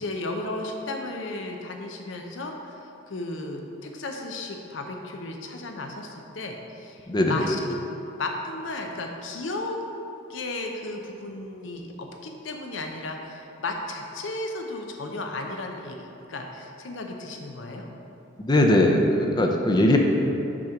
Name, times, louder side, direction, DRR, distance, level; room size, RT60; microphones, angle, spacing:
voice 1, 0.0-7.7 8.1-9.8 10.3-17.9 19.9-20.0, left 2 dB, 85° left, 3 dB, 0.7 m, -34 dB
voice 2, 7.1-7.4 18.4-20.0, left 1 dB, 20° left, 2 dB, 0.5 m, -20 dB
6.1 x 4.4 x 5.0 m, 2.8 s
head